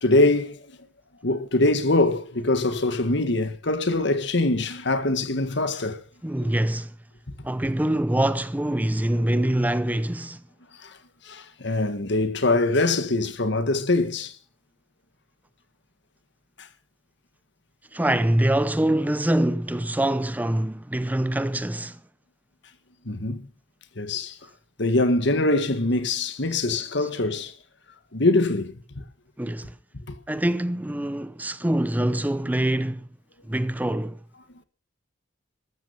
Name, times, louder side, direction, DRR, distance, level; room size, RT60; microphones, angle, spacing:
voice 1, 0.0-0.6 1.2-6.0 10.8-11.0 11.2-14.3 16.6-16.7 23.1-23.5 24.0-24.4 24.8-27.5 28.1-28.7 30.1-30.2, left 2 dB, 65° left, 1.7 m, -23 dB
voice 2, 6.2-6.9 7.4-10.4 17.9-22.0 29.4-29.7 30.3-33.1 33.5-34.2, right 1 dB, 10° right, 0.6 m, -24 dB
13.5 x 13.5 x 5.7 m
head